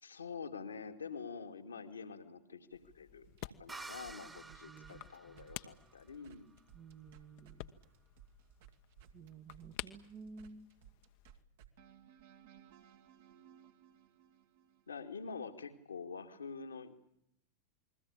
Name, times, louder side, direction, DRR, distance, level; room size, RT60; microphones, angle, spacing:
voice 1, 0.0-6.5 14.9-16.9, left 5 dB, 75° left, 5 dB, 2.5 m, -46 dB
sound 1, 2.7-11.4, left 15 dB, 50° left, 1.3 m, -52 dB
sound 2, 3.2-7.6 7.8-15.0, right 9 dB, 55° right, 2.2 m, -61 dB
sound 3, 3.7-7.2, right 3 dB, 10° right, 1.7 m, -52 dB
voice 2, 4.3-5.5 6.7-7.7 9.1-10.7, right 5 dB, 30° right, 6 dB, 1.4 m, -54 dB
28.5 x 21.5 x 8.8 m, 0.76 s
figure-of-eight pair, 90°, 0 cm